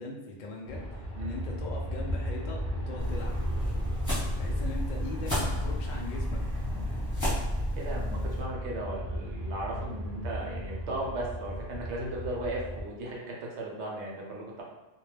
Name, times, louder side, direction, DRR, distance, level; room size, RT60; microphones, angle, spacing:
voice 1, 0.0-3.3 4.4-6.4, left 2 dB, 60° left, 0 dB, 0.5 m, -40 dB
Aircraft, 0.7-12.8, equal, 40° right, 0.6 m, -36 dB
sound 1, 3.0-8.4, equal, 15° left, 1.0 m, -32 dB
voice 2, 7.8-14.6, right 1 dB, 70° right, -2 dB, 0.9 m, -36 dB
2.2 x 2.1 x 3.1 m, 1.1 s
omnidirectional pair, 1.2 m